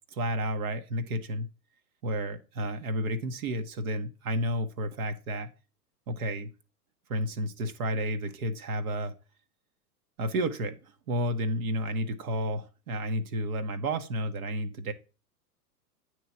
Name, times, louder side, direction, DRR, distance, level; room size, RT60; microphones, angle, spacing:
voice 1, 0.1-1.5 2.0-5.5 6.1-6.5 7.1-9.1 10.2-14.9, equal, 65° right, 1.0 m, -31 dB
8.9 x 3.1 x 5.5 m
hypercardioid pair, 110°, 46 cm